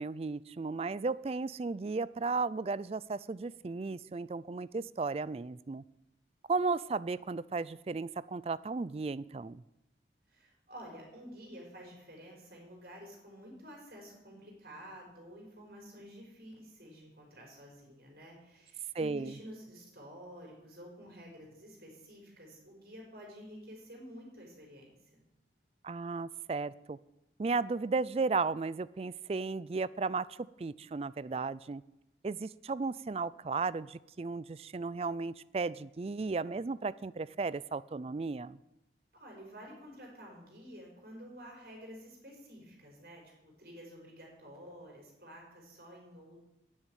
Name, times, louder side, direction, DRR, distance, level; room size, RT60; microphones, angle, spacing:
voice 1, 0.0-5.8 6.5-9.6 18.9-19.3 25.8-27.0 27.4-31.8 32.2-38.6, right 4 dB, 35° right, 18 dB, 0.3 m, -35 dB
voice 2, 10.3-25.2 39.1-46.4, equal, 55° right, -1 dB, 5.2 m, -50 dB
10.0 x 8.7 x 9.1 m, 0.90 s
head